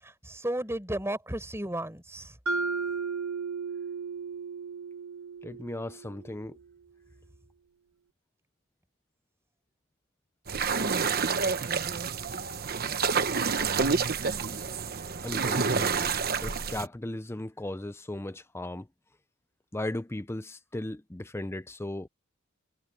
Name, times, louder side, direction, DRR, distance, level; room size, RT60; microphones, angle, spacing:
voice 1, 0.0-2.4, right 1 dB, 10° right, 5.0 m, -34 dB
Mallet percussion, 2.5-6.5, right 4 dB, 75° right, 1.5 m, -34 dB
voice 2, 5.4-6.6 15.2-16.1 16.4-18.9 19.7-22.1, left 1 dB, 10° left, 0.6 m, -36 dB
sound 1, 10.5-16.9, right 5 dB, 45° right, 1.1 m, -28 dB
head